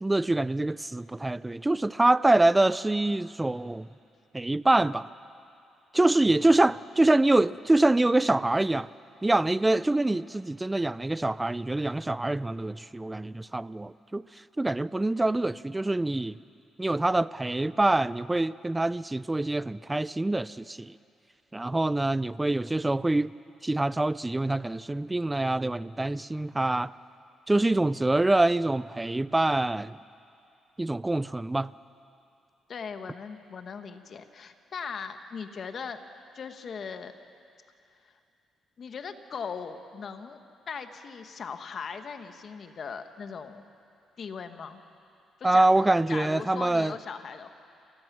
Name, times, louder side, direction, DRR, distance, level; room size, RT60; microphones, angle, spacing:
voice 1, 0.0-3.9 4.3-5.1 5.9-8.9 9.2-14.2 14.6-16.4 16.8-20.9 21.5-23.3 23.6-26.9 27.5-30.0 30.8-31.7 45.4-46.9, right 2 dB, 15° right, 18 dB, 0.4 m, -25 dB
voice 2, 32.7-36.0 36.3-37.1 38.0-38.2 38.8-40.4 40.7-43.6 44.2-44.8 45.4-47.5, left 6 dB, 50° left, 8 dB, 1.2 m, -39 dB
28.5 x 15.0 x 6.1 m, 2.6 s
cardioid pair, 90°, 0 cm